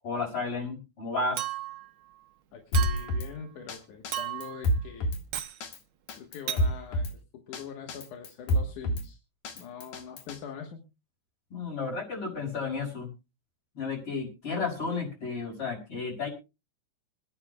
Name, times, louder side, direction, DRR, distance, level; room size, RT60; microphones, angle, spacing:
voice 1, 0.0-1.5 11.5-13.1 13.7-16.3, left 4 dB, 45° left, -4 dB, 6.7 m, -32 dB
Chink clink, 1.4-1.9 2.7-3.2 4.1-4.6 5.3-5.6 6.5-6.7, right 12 dB, 85° right, 1.1 m, -34 dB
voice 2, 2.5-5.1 6.1-9.2 9.5-10.9, left 7 dB, 85° left, 4 dB, 2.9 m, -43 dB
Drum kit, 2.7-3.3 3.7-3.8 4.0-5.2 5.6-5.8 6.1-7.1 7.5-7.6 7.9-9.1 9.4-10.4, equal, 70° left, 3.0 m, -28 dB
26.0 x 10.0 x 2.3 m, 0.29 s
omnidirectional pair, 3.4 m